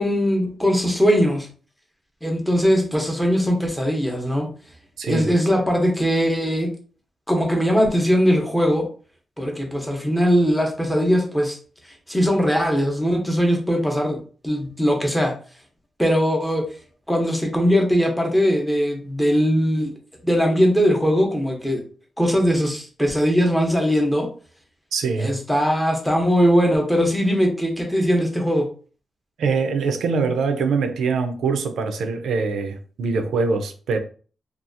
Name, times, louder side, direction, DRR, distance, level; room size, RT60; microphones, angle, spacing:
voice 1, 0.0-1.5 2.2-4.5 5.0-6.7 7.3-8.9 9.4-11.6 12.1-15.3 16.0-16.7 17.1-19.9 20.2-21.8 22.2-24.3 25.2-28.6, equal, 5° left, 0.7 m, -20 dB
voice 2, 5.0-5.3 24.9-25.4 29.4-34.0, right 4 dB, 85° right, 0.4 m, -23 dB
2.7 x 2.3 x 2.5 m
wide cardioid pair, 120°, 0 cm